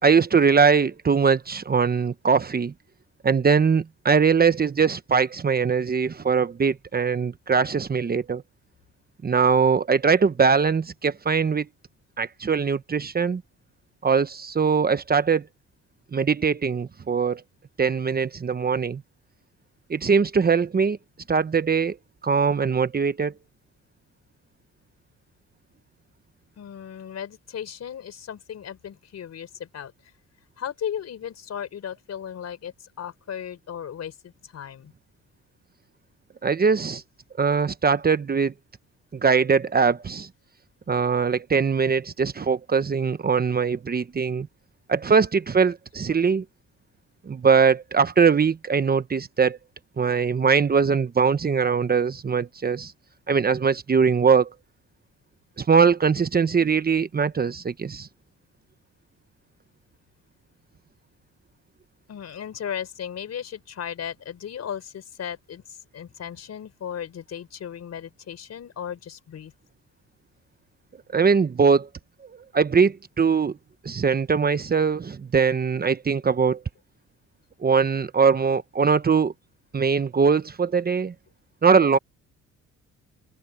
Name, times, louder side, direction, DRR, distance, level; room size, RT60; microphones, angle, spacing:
voice 1, 0.0-2.7 3.2-8.4 9.2-11.6 12.2-13.4 14.0-15.5 16.1-17.4 17.8-19.0 19.9-21.0 21.3-22.0 22.2-23.3 36.4-37.0 37.4-38.5 39.1-40.3 40.9-44.5 44.9-46.4 47.3-49.6 50.0-52.9 53.3-54.5 55.6-58.1 71.1-71.9 72.3-73.6 73.8-76.6 77.6-79.3 79.7-81.1 81.6-82.0, right 5 dB, 30° right, 1.0 m, -21 dB
voice 2, 26.6-29.9 30.6-34.9 46.1-46.2 62.1-69.5, left 9 dB, 60° left, 4.3 m, -36 dB
cardioid pair, 90°, 30 cm